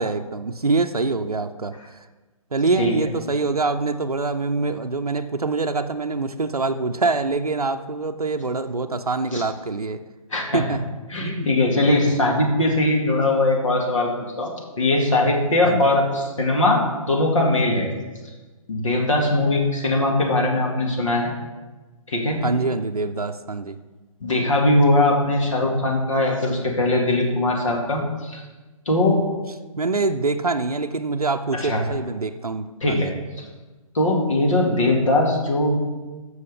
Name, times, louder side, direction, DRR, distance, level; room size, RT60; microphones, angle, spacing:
voice 1, 0.0-1.7 2.5-10.0 10.5-10.8 11.2-11.5 15.6-15.9 22.4-23.8 29.8-33.1, right 3 dB, 85° right, 7 dB, 0.5 m, -25 dB
voice 2, 10.3-10.6 11.1-14.1 14.4-17.9 18.7-21.3 22.1-22.4 24.2-28.4 28.9-29.2 31.5-31.8 32.8-33.1 33.9-35.8, left 2 dB, 60° left, 0 dB, 2.2 m, -20 dB
14.0 x 6.4 x 3.6 m, 1.2 s
figure-of-eight pair, 130°, 19 cm